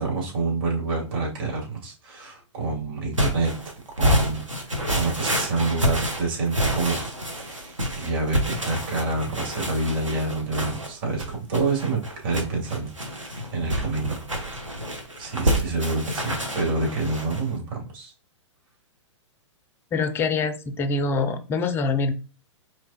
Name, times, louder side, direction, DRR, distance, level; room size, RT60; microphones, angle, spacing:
voice 1, 0.0-3.6 4.0-14.6 15.2-18.1, right 3 dB, 45° right, -3 dB, 2.3 m, -28 dB
sound 1, 3.1-17.5, equal, 90° right, 1.1 m, -27 dB
voice 2, 19.9-22.1, left 4 dB, 15° left, 9 dB, 0.4 m, -24 dB
4.5 x 3.2 x 2.8 m, 0.34 s
figure-of-eight pair, 110°, 16 cm